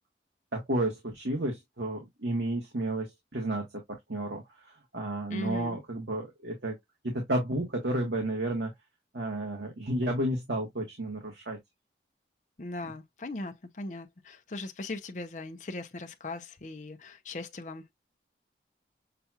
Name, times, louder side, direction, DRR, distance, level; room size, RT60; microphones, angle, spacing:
voice 1, 0.5-3.7 4.1-6.8 7.0-8.7 9.1-11.6, right 1 dB, 85° right, 1.4 m, -32 dB
voice 2, 5.3-5.8 12.6-17.9, left 2 dB, 45° left, 0.6 m, -39 dB
6.8 x 2.4 x 2.8 m
head